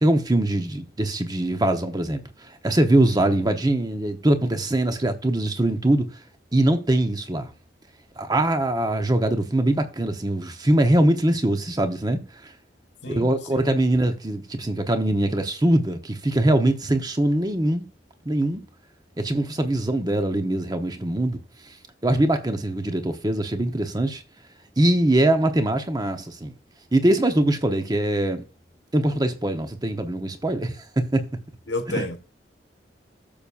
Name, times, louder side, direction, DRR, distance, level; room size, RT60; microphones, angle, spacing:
voice 1, 0.0-2.2 2.6-6.1 6.5-7.5 8.2-12.2 13.1-17.9 18.2-18.6 19.2-21.4 22.0-24.2 24.8-26.5 26.9-28.4 28.9-31.3 31.9-32.0, right 1 dB, 20° right, 1.0 m, -22 dB
voice 2, 13.0-13.7 31.7-32.2, left 2 dB, 85° left, 1.4 m, -31 dB
13.5 x 7.0 x 2.5 m
head